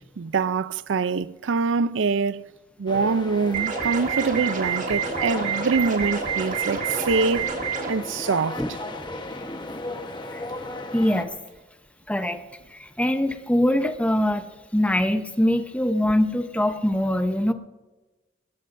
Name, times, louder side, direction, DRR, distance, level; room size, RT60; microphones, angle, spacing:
voice 1, 0.2-2.4 2.8-7.5 7.9-8.6, right 4 dB, 85° right, 0.5 m, -24 dB
sound 1, 2.9-11.2, left 1 dB, 25° left, 1.1 m, -35 dB
sound 2, 3.5-7.9, right 7 dB, 40° right, 1.6 m, -28 dB
voice 2, 10.9-11.3 12.1-12.4 12.7-14.5 14.7-17.5, left 1 dB, 5° left, 0.7 m, -23 dB
20.5 x 18.0 x 2.6 m
head